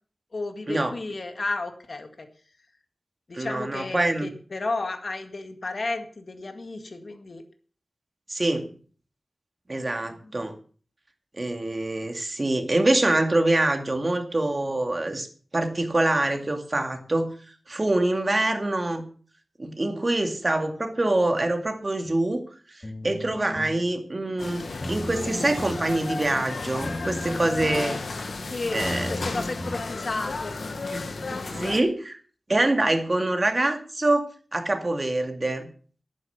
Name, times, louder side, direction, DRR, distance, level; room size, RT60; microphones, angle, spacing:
voice 1, 0.3-2.3 3.3-7.4 10.2-10.5 28.5-30.7, left 3 dB, 65° left, 6 dB, 1.9 m, -33 dB
voice 2, 3.3-4.3 8.3-8.7 9.7-10.5 11.4-15.3 15.5-17.3 17.7-19.0 19.6-22.4 23.0-28.0 28.7-29.1 30.9-31.0 31.5-32.2 32.5-35.7, right 2 dB, 40° right, 6 dB, 2.3 m, -25 dB
sound 1, 22.8-23.8 24.8-25.8 26.8-27.8 28.8-29.8, left 1 dB, 30° left, 3.0 m, -35 dB
sound 2, 24.4-31.8, left 3 dB, 90° left, 1.4 m, -33 dB
11.0 x 9.6 x 7.0 m, 0.43 s
wide cardioid pair, 75°, 0 cm